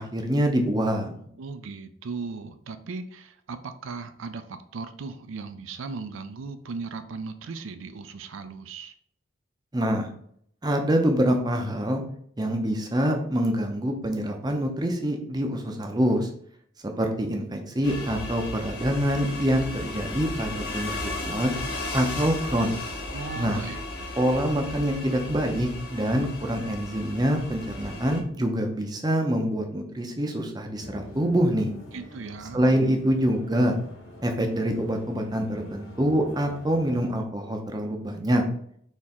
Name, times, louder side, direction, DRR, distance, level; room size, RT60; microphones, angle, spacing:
voice 1, 0.0-1.3 9.7-10.1 10.6-12.0 12.4-16.3 17.0-20.9 21.3-21.6 21.9-22.8 23.4-23.6 24.2-31.7 32.5-33.8 34.2-38.4, equal, 20° right, 4 dB, 0.6 m, -25 dB
voice 2, 1.4-8.9 23.1-23.8 31.9-32.6, right 4 dB, 75° right, 10 dB, 0.4 m, -37 dB
sound 1, 17.8-28.2, left 2 dB, 50° left, 0.9 m, -35 dB
sound 2, 30.8-37.1, left 1 dB, 85° left, 1.3 m, -45 dB
4.2 x 3.0 x 3.6 m, 0.65 s
head